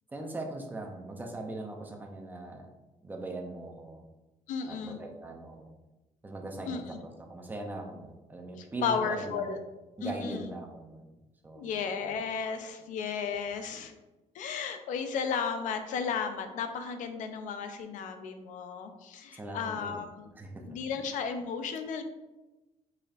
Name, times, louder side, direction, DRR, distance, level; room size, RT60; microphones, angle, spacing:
voice 1, 0.1-2.7 3.0-4.0 4.7-5.7 6.2-9.6 10.0-11.1 11.4-11.7 19.3-20.0 20.3-20.8, right 2 dB, 15° right, 2 dB, 0.5 m, -40 dB
voice 2, 4.5-5.0 6.7-6.8 8.6-9.6 10.0-10.4 11.6-13.9 14.3-20.1 20.6-22.0, left 6 dB, 85° left, 7 dB, 0.6 m, -34 dB
5.2 x 4.2 x 2.4 m, 1.1 s
cardioid pair, 175°, 13 cm